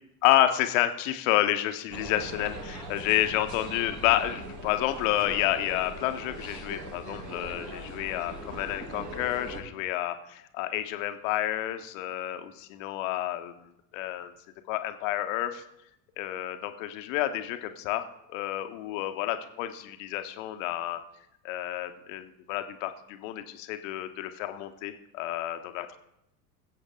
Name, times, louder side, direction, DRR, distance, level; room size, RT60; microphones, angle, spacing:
voice 1, 0.2-13.5 13.9-14.3 14.7-15.6 16.2-21.0 21.4-26.0, left 13 dB, 50° left, 9 dB, 1.3 m, -29 dB
sound 1, 1.9-9.6, right 2 dB, 40° right, 4.6 m, -40 dB
21.5 x 7.8 x 3.8 m, 0.84 s
figure-of-eight pair, 80°, 50 cm